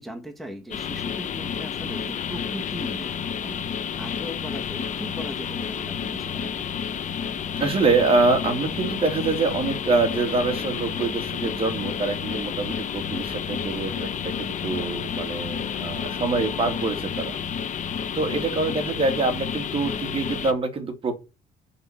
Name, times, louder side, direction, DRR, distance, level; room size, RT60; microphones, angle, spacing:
voice 1, 0.0-6.7 18.7-18.8, equal, ahead, 1.6 m, -39 dB
sound 1, 0.7-20.5, left 7 dB, 45° left, 1.1 m, -30 dB
sound 2, 3.7-17.0, left 10 dB, 80° left, 1.5 m, -43 dB
voice 2, 7.0-7.3 7.6-17.4 18.1-21.2, right 3 dB, 35° right, 2.5 m, -25 dB
6.7 x 6.0 x 7.1 m
cardioid pair, 110°, 17 cm